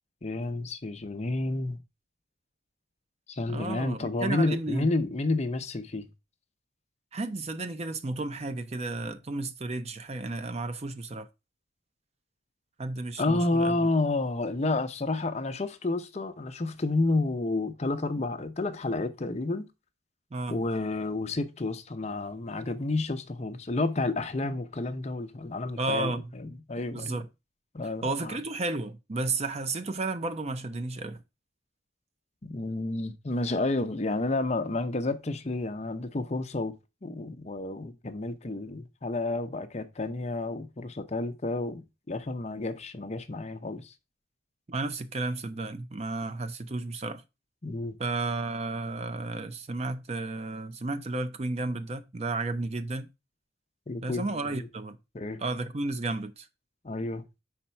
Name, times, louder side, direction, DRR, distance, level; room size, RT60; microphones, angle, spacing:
voice 1, 0.2-1.8 3.3-6.1 13.2-19.7 20.5-27.2 27.7-28.4 32.4-36.7 37.0-43.9 47.6-48.0 53.9-54.7 55.1-55.4 56.8-57.2, left 2 dB, 35° left, 0.6 m, -30 dB
voice 2, 3.5-4.9 7.1-11.3 12.8-13.8 20.3-20.6 25.8-26.3 26.9-27.3 28.0-31.2 44.7-47.2 48.0-53.1 54.0-55.0 55.4-56.5, right 2 dB, 30° right, 0.5 m, -32 dB
5.2 x 4.3 x 5.6 m
head